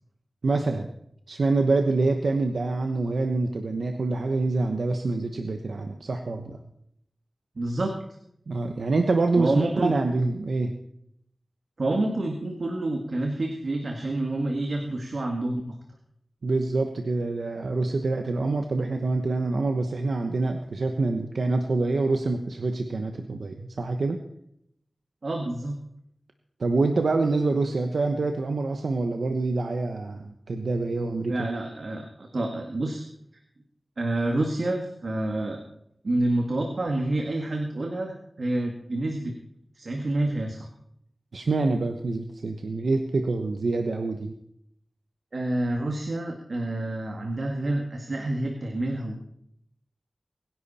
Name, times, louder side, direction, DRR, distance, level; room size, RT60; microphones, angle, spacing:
voice 1, 0.4-0.9 1.3-6.6 8.5-10.7 16.4-24.2 26.6-31.3 41.3-44.3, right 3 dB, 85° right, 5 dB, 1.1 m, -26 dB
voice 2, 7.6-7.9 9.4-9.9 11.8-15.6 25.2-25.8 31.3-33.0 34.0-35.6 36.0-39.3 39.8-40.7 45.3-49.2, right 2 dB, 65° right, 2 dB, 2.0 m, -28 dB
24.0 x 11.0 x 4.3 m, 0.74 s
wide cardioid pair, 70°, 0 cm